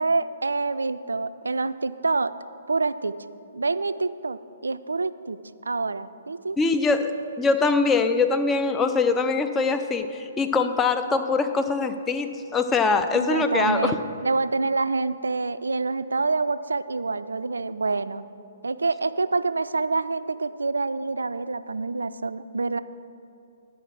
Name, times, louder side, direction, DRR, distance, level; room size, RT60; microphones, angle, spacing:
voice 1, 0.0-2.3 2.7-3.2 3.5-5.4 5.7-6.6 13.1-14.0 14.2-18.2 18.6-22.8, right 3 dB, 75° right, 13 dB, 0.3 m, -26 dB
voice 2, 6.6-14.0, left 4 dB, 15° left, 8 dB, 0.5 m, -23 dB
9.7 x 5.3 x 6.1 m, 2.6 s
figure-of-eight pair, 125°, 0 cm